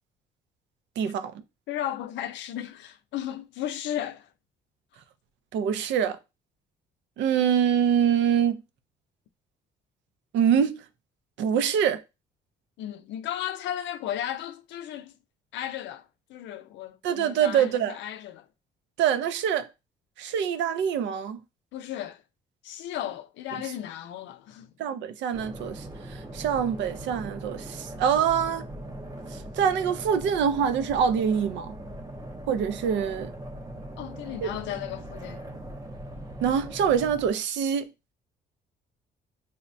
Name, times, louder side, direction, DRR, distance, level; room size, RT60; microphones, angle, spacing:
voice 1, 1.0-1.3 5.5-6.2 7.2-8.6 10.3-10.8 11.4-12.0 17.0-18.0 19.0-19.7 20.2-21.4 24.8-25.8 26.1-28.7 29.6-31.7 32.5-33.3 34.4-34.5 36.4-37.8, right 8 dB, 85° right, 0.5 m, -25 dB
voice 2, 1.7-4.3 12.8-15.1 15.5-18.5 21.7-22.2 22.6-24.7 34.0-35.4, left 11 dB, 85° left, 0.5 m, -35 dB
sound 1, 25.3-37.3, right 1 dB, 20° right, 0.6 m, -40 dB
5.5 x 2.1 x 2.5 m
cardioid pair, 130°, 18 cm